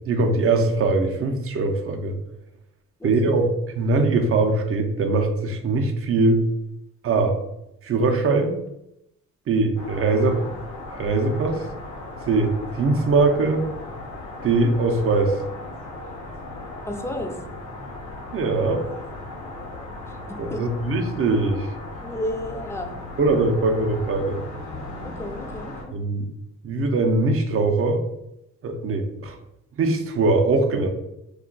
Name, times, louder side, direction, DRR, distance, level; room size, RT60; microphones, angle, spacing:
voice 1, 0.0-2.2 3.0-3.5 3.7-6.4 7.0-7.4 7.8-8.6 9.5-10.5 10.9-11.7 12.3-13.7 14.4-15.4 18.3-18.8 20.4-21.7 23.2-24.4 25.9-26.3 26.6-28.0 28.6-29.4 29.8-30.9, right 3 dB, 45° right, 5 dB, 0.5 m, -21 dB
voice 2, 3.0-3.4 16.9-17.3 20.3-20.6 22.0-22.9 24.9-25.9, left 1 dB, 10° left, 4 dB, 0.4 m, -32 dB
sound 1, 9.8-25.8, left 2 dB, 90° left, 0.9 m, -37 dB
2.4 x 2.2 x 3.7 m, 0.85 s
cardioid pair, 90°, 30 cm